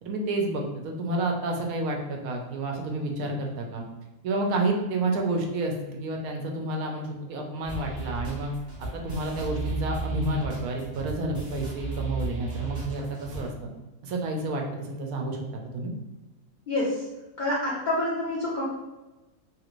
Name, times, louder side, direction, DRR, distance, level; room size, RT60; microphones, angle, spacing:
voice 1, 0.0-3.8 4.2-8.5 8.8-13.7 14.0-15.4 15.7-15.9, right 2 dB, 80° right, 1 dB, 1.0 m, -30 dB
sound 1, 7.6-13.5, right 3 dB, 35° right, 0.9 m, -35 dB
voice 2, 16.7-17.0 17.4-18.6, left 1 dB, 45° left, -7 dB, 0.6 m, -27 dB
3.1 x 2.5 x 3.0 m, 1.1 s
omnidirectional pair, 1.5 m